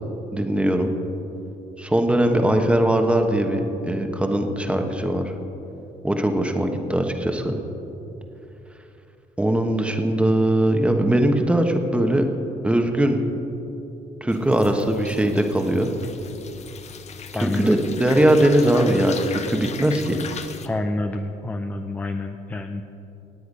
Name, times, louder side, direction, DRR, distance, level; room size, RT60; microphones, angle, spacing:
voice 1, 0.3-0.9 1.8-5.3 6.0-7.6 9.4-12.2 12.6-13.2 14.2-15.9 17.4-20.2, right 1 dB, 5° right, 4 dB, 1.2 m, -20 dB
sound 1, 14.3-20.7, left 6 dB, 40° left, 0.9 m, -37 dB
voice 2, 17.3-17.8 20.6-22.8, left 2 dB, 10° left, 6 dB, 0.5 m, -28 dB
18.0 x 8.2 x 5.3 m, 3.0 s
cardioid pair, 110°, 17 cm